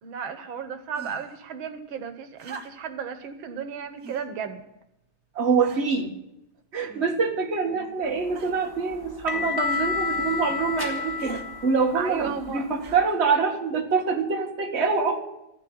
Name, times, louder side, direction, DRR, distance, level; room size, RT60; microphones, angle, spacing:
voice 1, 0.0-4.6 7.7-7.9 12.0-12.7, right 7 dB, 85° right, 9 dB, 2.0 m, -34 dB
sound 1, 0.9-1.4 2.4-3.0 4.0-4.3 5.0-5.1 5.6-6.1 6.9-7.4 8.4-8.7 9.7-9.9 11.2-11.5 12.8-13.3 14.3-14.4, right 4 dB, 50° right, 1.7 m, -44 dB
voice 2, 5.3-6.2 6.7-15.2, right 5 dB, 35° right, 2 dB, 1.9 m, -25 dB
sound 2, 8.2-13.0, left 4 dB, 10° left, 1.4 m, -31 dB
14.5 x 7.4 x 9.9 m, 0.89 s
omnidirectional pair, 2.2 m